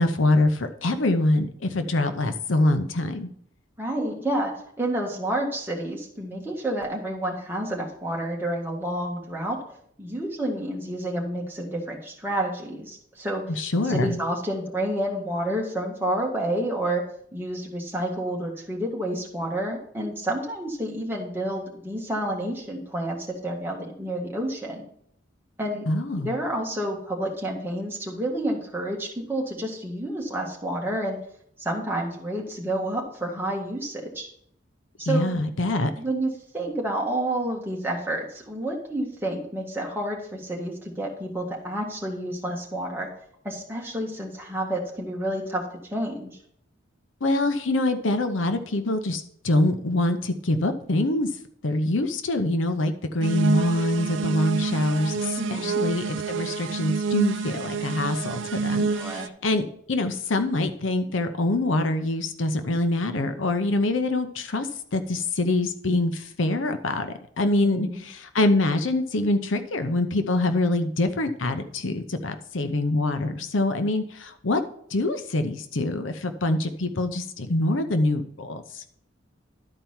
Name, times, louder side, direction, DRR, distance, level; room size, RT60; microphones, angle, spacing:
voice 1, 0.0-3.3 13.5-14.2 25.9-26.3 35.1-35.9 47.2-51.3 51.6-59.6 59.9-64.7 64.9-74.6 74.9-78.8, left 2 dB, 80° left, 9 dB, 0.8 m, -25 dB
voice 2, 3.8-4.5 4.8-9.6 10.0-13.4 13.8-17.0 17.3-24.8 25.6-25.9 26.2-31.2 31.6-34.3 35.0-35.4 36.0-43.1 43.4-46.3 55.4-55.7 58.9-59.3 67.6-68.0, right 1 dB, 10° right, -2 dB, 1.7 m, -29 dB
sound 1, 53.2-59.3, right 5 dB, 70° right, 0.5 m, -28 dB
12.0 x 4.5 x 5.6 m, 0.65 s
head